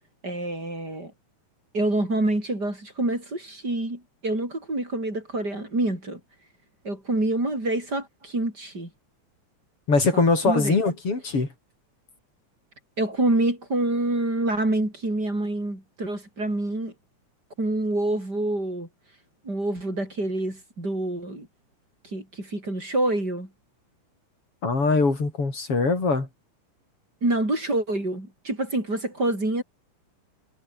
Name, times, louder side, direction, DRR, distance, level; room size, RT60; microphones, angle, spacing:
voice 1, 0.2-1.1 1.7-6.2 6.8-8.9 10.1-10.8 13.0-16.9 17.6-18.9 19.4-21.5 22.1-23.5 27.2-29.6, right 2 dB, 30° right, 8.2 m, -27 dB
voice 2, 9.9-11.5 24.6-26.3, left 3 dB, 45° left, 6.8 m, -22 dB
omnidirectional pair, 3.6 m